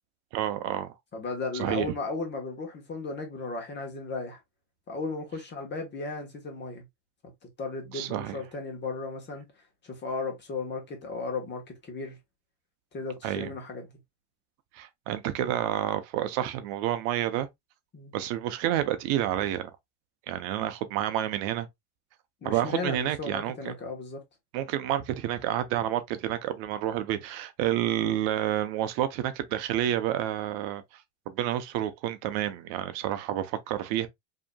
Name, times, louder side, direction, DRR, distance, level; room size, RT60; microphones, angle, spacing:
voice 1, 0.3-0.9 1.5-1.9 7.9-8.4 13.2-13.5 14.7-17.5 18.1-19.7 20.3-21.7 22.4-23.7 24.5-34.1, right 12 dB, 60° right, 0.6 m, -29 dB
voice 2, 1.1-4.4 4.9-6.8 7.6-9.4 9.8-12.2 12.9-13.9 17.9-18.1 22.4-24.2, left 3 dB, 25° left, 1.1 m, -35 dB
4.9 x 2.8 x 2.2 m
cardioid pair, 155°, 47 cm